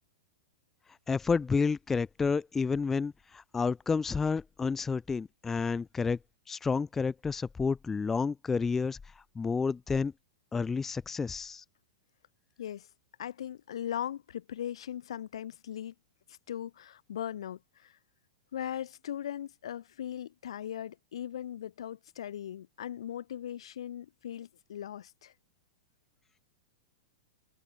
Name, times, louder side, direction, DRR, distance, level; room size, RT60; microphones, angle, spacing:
voice 1, 1.1-6.2 6.5-9.0 9.4-10.1 10.5-11.6, left 5 dB, 10° left, 0.4 m, -30 dB
voice 2, 13.2-15.9 16.3-18.0 18.5-25.3, left 10 dB, 80° left, 3.2 m, -39 dB
supercardioid pair, 155°, 3 cm